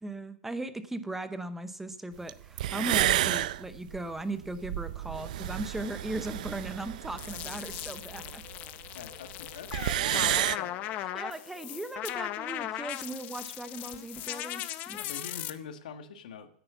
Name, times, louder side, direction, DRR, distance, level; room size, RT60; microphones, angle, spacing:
voice 1, 0.0-8.4 11.0-15.0, right 2 dB, 5° right, 12 dB, 0.7 m, -38 dB
sound 1, 2.3-2.4 2.6-8.6 8.8-8.9 9.1-9.2 9.5-10.6, right 13 dB, 75° right, 0.5 m, -30 dB
sound 2, 5.6-12.5, left 11 dB, 60° left, 1.3 m, -54 dB
sound 3, 7.2-15.5, left 13 dB, 35° left, 0.7 m, -38 dB
voice 2, 8.9-10.7 15.0-16.5, left 7 dB, 80° left, 8 dB, 1.4 m, -45 dB
10.0 x 8.6 x 6.8 m, 0.65 s
supercardioid pair, 140°, 4 cm